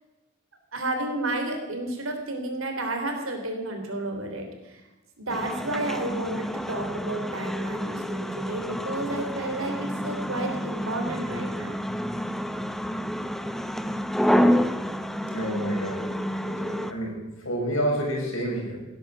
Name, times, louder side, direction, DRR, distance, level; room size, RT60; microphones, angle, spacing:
voice 1, 0.7-4.8 5.2-11.8, right 2 dB, 75° right, 4 dB, 3.4 m, -31 dB
sound 1, 5.3-16.9, equal, ahead, 0.7 m, -29 dB
voice 2, 15.3-16.1 16.4-18.8, equal, 75° left, -1 dB, 6.1 m, -29 dB
17.0 x 10.5 x 7.4 m, 1.1 s
head